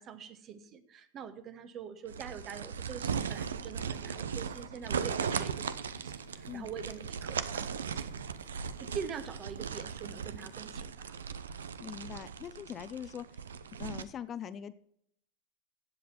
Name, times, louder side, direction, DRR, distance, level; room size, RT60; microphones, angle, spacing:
voice 1, 0.0-8.2 8.8-11.0, right 7 dB, 35° right, 11 dB, 1.4 m, -44 dB
sound 1, 2.1-14.0, right 7 dB, 80° right, 0.7 m, -38 dB
sound 2, 3.3-9.6, right 2 dB, 60° right, 2.5 m, -58 dB
sound 3, 5.5-10.8, left 5 dB, 80° left, 1.3 m, -61 dB
voice 2, 11.8-13.4 13.7-14.7, left 8 dB, 30° left, 14 dB, 0.7 m, -42 dB
16.0 x 7.8 x 4.3 m, 0.70 s
hypercardioid pair, 95°, 0 cm